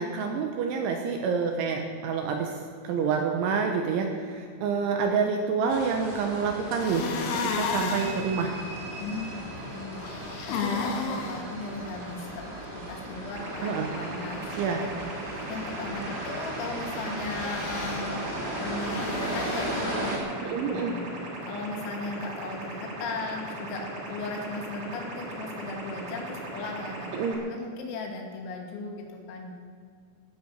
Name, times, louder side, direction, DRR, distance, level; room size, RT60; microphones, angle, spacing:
voice 1, 0.0-2.5 2.8-7.1 7.3-8.6 13.6-13.9 14.6-14.8 20.4-20.9 27.1-27.4, right 5 dB, 75° right, 3 dB, 3.3 m, -28 dB
sound 1, 5.7-20.2, right 1 dB, 15° right, 1.6 m, -36 dB
sound 2, 6.8-8.2 10.0-11.4 17.3-18.0 18.8-19.8, left 5 dB, 65° left, 3.0 m, -32 dB
voice 2, 9.0-10.0 10.5-12.4 12.9-14.5 14.8-18.3 18.6-20.4 20.6-21.0 21.4-27.1 27.5-29.5, left 3 dB, 80° left, 2 dB, 4.9 m, -37 dB
sound 3, 13.3-27.3, right 2 dB, 40° right, 3.4 m, -39 dB
17.0 x 10.5 x 7.1 m, 2.2 s
omnidirectional pair, 5.9 m